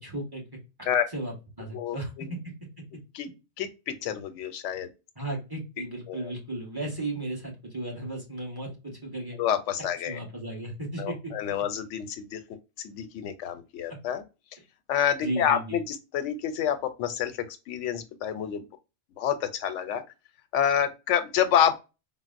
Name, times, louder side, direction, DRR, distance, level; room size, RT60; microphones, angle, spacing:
voice 1, 0.0-0.4 1.1-2.1 5.2-9.4 10.0-11.3 15.2-15.8, right 1 dB, 20° right, 1.0 m, -35 dB
voice 2, 1.7-2.3 3.1-3.3 3.6-4.9 6.1-6.3 9.4-10.2 11.0-12.4 12.8-14.2 14.9-18.7 19.2-20.0 20.5-21.7, left 9 dB, 90° left, 0.9 m, -28 dB
3.9 x 2.0 x 2.4 m
omnidirectional pair, 1.2 m